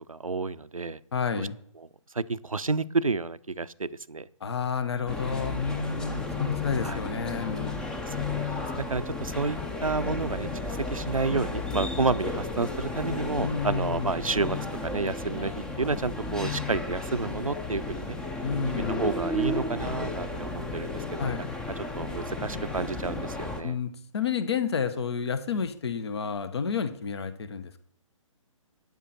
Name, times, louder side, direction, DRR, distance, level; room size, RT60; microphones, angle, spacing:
voice 1, 0.1-1.0 1.4-1.5 2.1-4.3 6.8-7.0 8.1-14.6 14.8-18.2 19.0-21.4 21.8-23.8, right 3 dB, 85° right, 15 dB, 0.6 m, -30 dB
voice 2, 1.1-1.6 4.4-7.8 13.4-14.2 18.4-19.1 21.2-21.4 23.6-27.8, left 6 dB, 50° left, 11 dB, 1.4 m, -30 dB
sound 1, 5.1-23.6, left 2 dB, 5° left, 0.6 m, -33 dB
12.5 x 9.6 x 4.4 m, 0.66 s
figure-of-eight pair, 135°, 17 cm